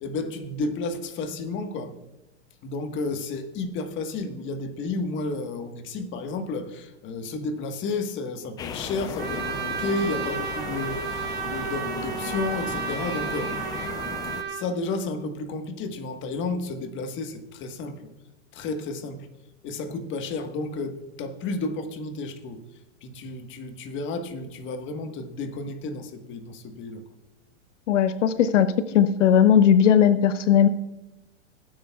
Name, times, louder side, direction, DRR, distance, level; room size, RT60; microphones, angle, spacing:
voice 1, 0.0-1.9 2.6-13.5 14.5-18.1 18.5-19.3 19.6-22.6 23.0-27.0, left 3 dB, 30° left, 7 dB, 1.4 m, -32 dB
sound 1, 8.6-14.4, left 6 dB, 10° left, 0.3 m, -35 dB
Trumpet, 9.2-14.6, right 8 dB, 25° right, 1.6 m, -32 dB
voice 2, 27.9-28.7 28.9-30.7, left 9 dB, 80° left, 12 dB, 0.8 m, -18 dB
17.0 x 9.5 x 2.3 m, 1.0 s
hypercardioid pair, 125°, 37 cm